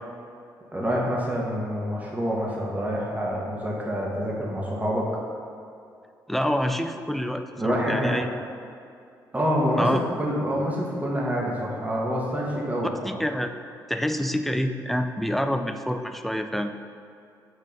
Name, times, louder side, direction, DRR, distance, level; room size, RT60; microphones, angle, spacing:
voice 1, 0.7-5.1 7.6-8.2 9.3-13.2, equal, 15° right, -3 dB, 1.8 m, -27 dB
voice 2, 6.3-8.3 9.8-10.0 13.0-13.5 13.9-16.7, equal, ahead, 7 dB, 0.5 m, -27 dB
5.3 x 5.2 x 5.6 m, 2.4 s
figure-of-eight pair, 40°, 10 cm